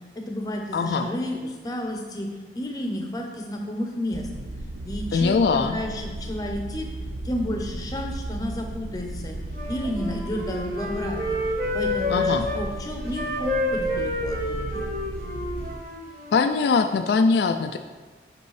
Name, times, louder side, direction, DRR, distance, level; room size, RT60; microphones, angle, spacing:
voice 1, 0.2-4.3 4.9-6.9 7.2-9.4 9.7-14.9, left 1 dB, 20° left, 2 dB, 0.7 m, -31 dB
voice 2, 0.7-1.1 5.1-5.8 12.1-12.5 16.3-17.8, left 4 dB, 70° left, 6 dB, 0.3 m, -21 dB
sound 1, 4.1-15.8, right 2 dB, 70° right, 0.5 m, -35 dB
Wind instrument woodwind instrument, 9.5-12.6 13.1-16.5, left 1 dB, 55° right, 1.4 m, -29 dB
8.0 x 5.2 x 3.2 m, 1.3 s
head